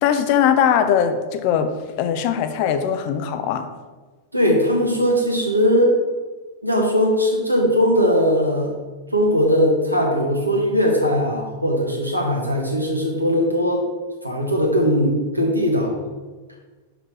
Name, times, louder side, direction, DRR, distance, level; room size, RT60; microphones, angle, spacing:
voice 1, 0.0-1.7 2.0-3.7, left 8 dB, 45° left, 9 dB, 0.6 m, -20 dB
voice 2, 4.3-5.9 6.6-8.7 9.1-13.8 14.2-15.9, equal, 85° right, -1 dB, 1.4 m, -19 dB
6.1 x 5.0 x 4.7 m, 1.3 s
figure-of-eight pair, 90°, 0 cm